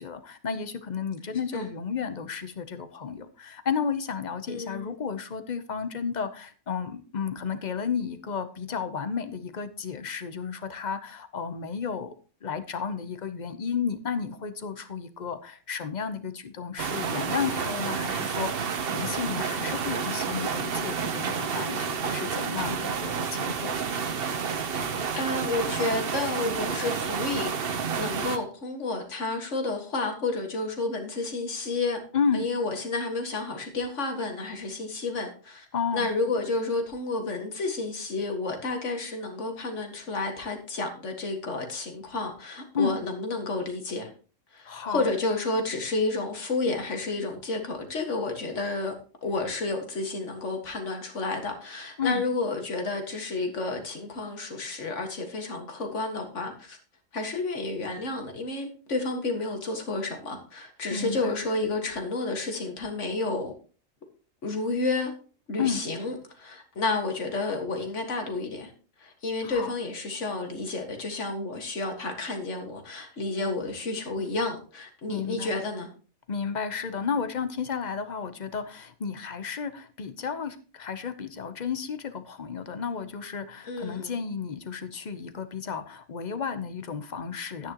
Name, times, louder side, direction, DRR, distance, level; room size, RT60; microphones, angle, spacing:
voice 1, 0.0-12.1 12.4-23.8 32.1-32.5 35.7-36.1 42.7-43.0 44.7-45.1 52.0-52.2 60.9-61.4 65.6-65.8 69.4-69.7 75.1-75.6 76.3-87.7, left 6 dB, 40° left, 0.8 m, -32 dB
voice 2, 4.5-5.0 25.1-27.5 28.0-32.0 32.3-35.7 35.9-44.1 44.5-48.9 49.2-56.8 57.1-63.5 64.4-65.1 65.5-68.7 69.0-75.9 83.7-84.1, left 3 dB, 65° left, 2.1 m, -31 dB
sound 1, 16.8-28.4, right 6 dB, 50° right, 1.0 m, -30 dB
11.5 x 9.5 x 2.9 m
omnidirectional pair, 1.3 m